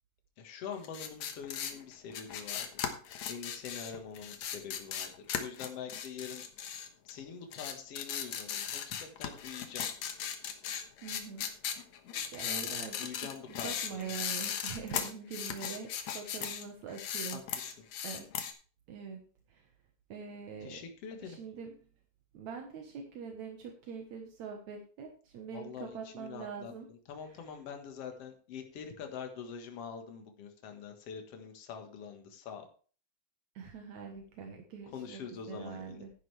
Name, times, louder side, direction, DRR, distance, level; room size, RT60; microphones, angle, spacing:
voice 1, 0.4-2.9 3.3-6.4 7.0-9.9 12.4-14.1 17.3-17.7 20.6-21.4 25.5-32.7 34.9-36.0, left 7 dB, 60° left, 5 dB, 2.5 m, -45 dB
sound 1, 0.8-7.2 7.5-16.6 16.9-18.5, left 8 dB, 75° left, 2.5 m, -37 dB
voice 2, 11.0-11.5 12.1-17.4 17.7-17.8 18.0-18.3 18.9-19.7 20.1-20.8 21.2-21.8 22.3-26.9 27.3-27.5 33.6-35.2 35.5-36.1, right 6 dB, 75° right, 2 dB, 2.6 m, -44 dB
11.5 x 10.0 x 3.4 m, 0.39 s
omnidirectional pair, 3.3 m